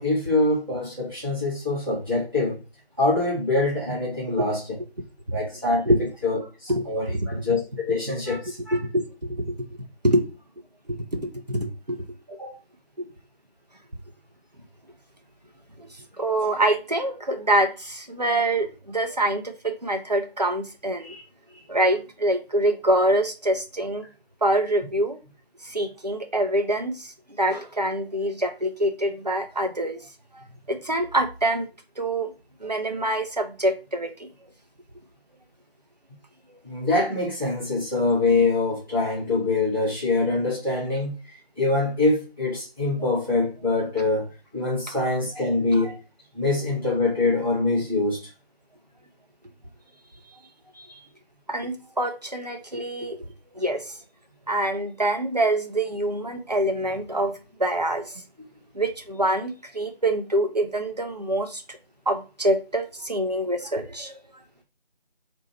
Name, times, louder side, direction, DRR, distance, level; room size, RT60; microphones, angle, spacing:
voice 1, 0.0-2.6 3.0-4.6 5.3-5.8 6.2-8.8 12.4-12.6 21.0-21.2 36.6-44.2 44.5-45.9 46.3-48.3 50.7-50.9, left 3 dB, 25° right, 1.1 m, -24 dB
voice 2, 6.7-7.4 8.7-9.0 9.3-9.5 10.0-10.2 10.9-12.1 15.8-15.9 16.2-21.1 21.7-24.0 24.4-25.2 25.6-30.0 30.3-31.7 32.0-32.3 32.6-34.3 43.0-43.1 51.5-53.2 53.5-54.0 54.5-58.2 58.7-61.8 62.1-64.2, right 1 dB, 45° right, 0.5 m, -25 dB
3.1 x 2.6 x 4.1 m
figure-of-eight pair, 170°, 30 cm